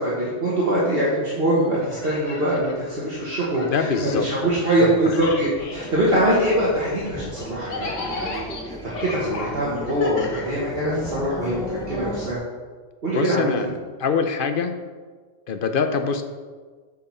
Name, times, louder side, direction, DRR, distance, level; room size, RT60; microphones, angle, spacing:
voice 1, 0.0-12.4 13.0-13.7, right 1 dB, 50° right, -7 dB, 1.6 m, -23 dB
sound 1, 1.7-4.9 5.1-11.1, left 2 dB, 80° left, 1.5 m, -36 dB
voice 2, 3.6-4.3 5.0-5.2 13.1-13.7 14.0-14.8 15.5-16.2, left 5 dB, 55° left, 8 dB, 0.7 m, -24 dB
sound 2, 5.6-12.3, left 1 dB, 5° left, 0.4 m, -35 dB
8.2 x 4.7 x 5.6 m, 1.5 s
omnidirectional pair, 1.3 m